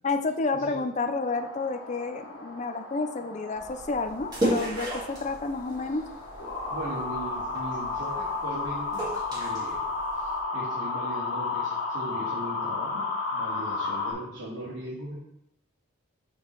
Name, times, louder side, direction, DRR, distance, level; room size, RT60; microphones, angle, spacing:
voice 1, 0.0-6.0, left 3 dB, 35° left, 8 dB, 0.5 m, -30 dB
sound 1, 1.3-14.1, left 3 dB, 80° left, 2.3 m, -33 dB
sound 2, 3.6-10.4, right 1 dB, 20° right, 2.1 m, -35 dB
voice 2, 6.7-9.8 10.1-15.1, right 1 dB, 80° right, -9 dB, 2.4 m, -39 dB
7.1 x 4.5 x 4.5 m, 0.81 s
head